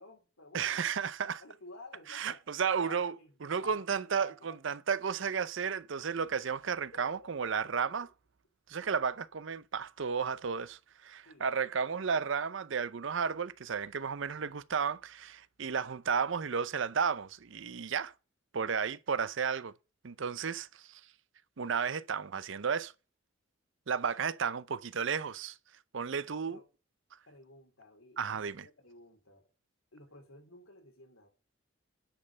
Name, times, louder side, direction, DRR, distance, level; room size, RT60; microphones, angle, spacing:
voice 1, 0.0-0.9 1.4-2.4 2.8-4.6 6.9-7.6 11.2-11.4 26.5-26.7 27.3-29.5 29.9-31.3, left 2 dB, 90° left, 3.2 m, -54 dB
voice 2, 0.5-1.4 2.1-3.1 3.4-8.1 8.7-18.1 18.5-19.7 20.0-21.0 21.6-22.9 23.9-25.6 25.9-26.6 28.2-28.7, right 6 dB, 65° right, 0.6 m, -33 dB
10.0 x 5.4 x 6.5 m
head